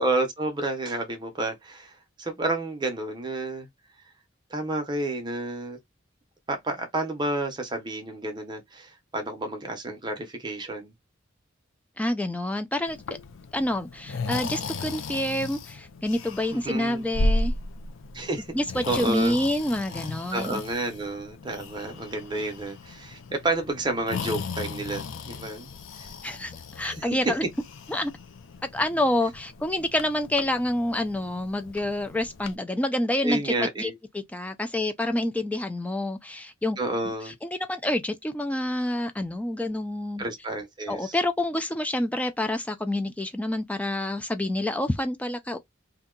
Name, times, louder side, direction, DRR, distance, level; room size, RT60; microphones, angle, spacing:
voice 1, 0.0-3.7 4.5-5.8 6.5-10.9 16.5-17.0 18.1-18.5 18.9-19.4 20.3-25.7 26.0-26.1 26.8-27.1 33.2-33.9 36.8-37.3 40.2-41.2, right 2 dB, 20° right, 0.7 m, -30 dB
voice 2, 12.0-13.0 13.5-17.5 18.5-20.6 26.2-27.5 27.9-28.1 28.7-33.9 34.3-36.8 37.2-40.2 40.9-45.6, left 1 dB, 5° left, 0.3 m, -28 dB
Breathing, 12.9-32.6, left 2 dB, 75° left, 0.5 m, -35 dB
2.7 x 2.3 x 3.6 m
head